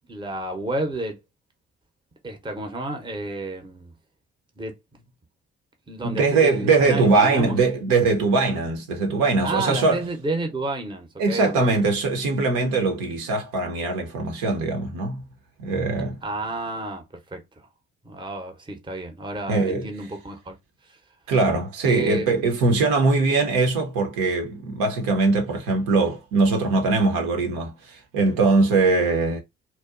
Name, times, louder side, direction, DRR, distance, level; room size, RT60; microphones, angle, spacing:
voice 1, 0.1-1.2 2.2-3.9 4.6-5.0 5.9-7.6 9.4-11.8 16.2-17.0 17.3-17.7 18.0-20.6 20.9-21.0 21.8-22.5, right 2 dB, 15° right, 0.8 m, -31 dB
voice 2, 6.0-10.0 11.2-15.2 15.6-16.2 19.5-19.9 21.3-29.4, right 3 dB, 60° right, 0.8 m, -21 dB
2.8 x 2.2 x 2.4 m
figure-of-eight pair, 40°, 38 cm